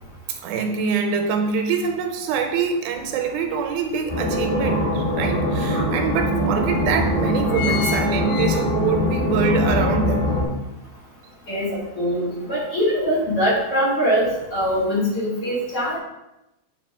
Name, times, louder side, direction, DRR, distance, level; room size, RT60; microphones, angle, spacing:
voice 1, 0.4-10.3, right 5 dB, 80° right, 4 dB, 2.5 m, -24 dB
sound 1, 3.3-3.4 3.9-5.0 5.7-5.8 6.0-6.1 6.8-7.0 7.3-9.1 9.5-9.6, left 7 dB, 90° left, 2.5 m, -30 dB
sound 2, 4.1-10.4, left 1 dB, 10° left, 2.2 m, -22 dB
voice 2, 11.5-16.0, equal, 45° left, -6 dB, 2.6 m, -22 dB
8.0 x 4.1 x 4.9 m, 0.92 s
omnidirectional pair, 4.4 m